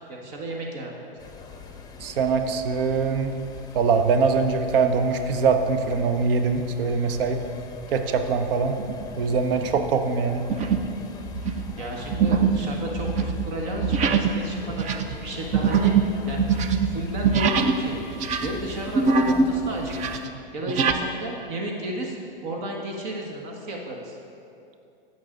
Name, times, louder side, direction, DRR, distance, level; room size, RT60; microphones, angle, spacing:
voice 1, 0.1-1.1 11.4-15.9 16.3-16.5 16.9-18.0 18.4-20.2 20.5-24.2, right 1 dB, 50° right, 0 dB, 1.5 m, -33 dB
sound 1, 1.2-20.2, left 5 dB, 15° left, 0.9 m, -43 dB
voice 2, 2.0-3.3 3.7-7.4 7.9-8.8 9.2-10.5, right 5 dB, 70° right, 7 dB, 0.8 m, -23 dB
sound 2, 8.8-9.1 9.6-9.9 10.5-11.0 11.2-17.8 18.1-19.5 19.8-21.0, right 5 dB, 25° right, 0.5 m, -23 dB
16.5 x 6.1 x 3.9 m, 2.6 s
hypercardioid pair, 125°, 29 cm